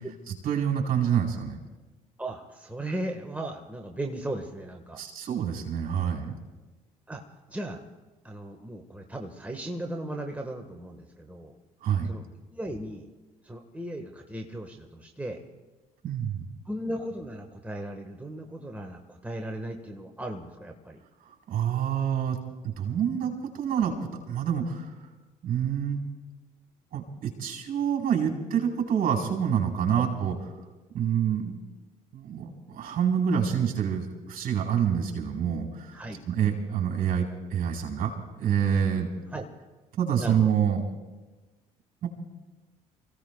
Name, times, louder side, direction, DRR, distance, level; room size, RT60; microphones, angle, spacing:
voice 1, 0.4-1.6 5.0-6.3 11.8-12.1 16.0-16.4 21.5-22.4 22.6-23.9 24.3-24.9 25.4-26.0 26.9-30.4 30.9-31.6 32.1-39.1 40.0-40.8 42.0-42.1, right 8 dB, 50° right, 2 dB, 4.2 m, -27 dB
voice 2, 2.2-5.0 7.1-7.2 7.5-7.8 8.2-11.6 12.0-12.2 12.5-13.1 13.4-15.4 16.6-21.0 29.9-30.1 35.9-36.2 38.9-39.4 40.2-40.5, right 1 dB, 10° right, 3 dB, 1.5 m, -37 dB
29.5 x 16.5 x 2.4 m, 1.2 s
figure-of-eight pair, 55°, 19 cm